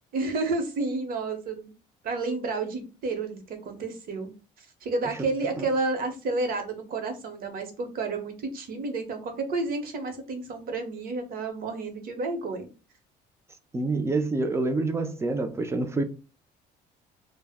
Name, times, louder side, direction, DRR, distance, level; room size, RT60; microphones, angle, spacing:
voice 1, 0.1-1.7 2.0-4.3 4.8-12.7, right 3 dB, 60° right, 0.8 m, -30 dB
voice 2, 13.7-16.0, right 2 dB, 15° right, 0.4 m, -27 dB
2.1 x 2.0 x 3.4 m
cardioid pair, 110°, 17 cm